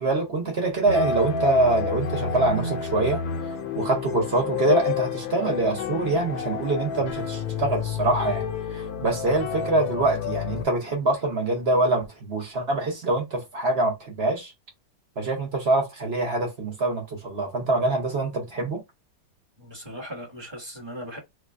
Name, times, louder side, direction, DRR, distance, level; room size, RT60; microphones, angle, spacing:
voice 1, 0.0-3.2 3.7-14.5 15.2-18.8, right 2 dB, 50° right, 0.7 m, -24 dB
sound 1, 0.9-10.7, left 6 dB, 65° left, 1.0 m, -29 dB
voice 2, 19.6-21.2, equal, 20° right, 1.0 m, -38 dB
3.3 x 2.1 x 3.5 m
omnidirectional pair, 2.0 m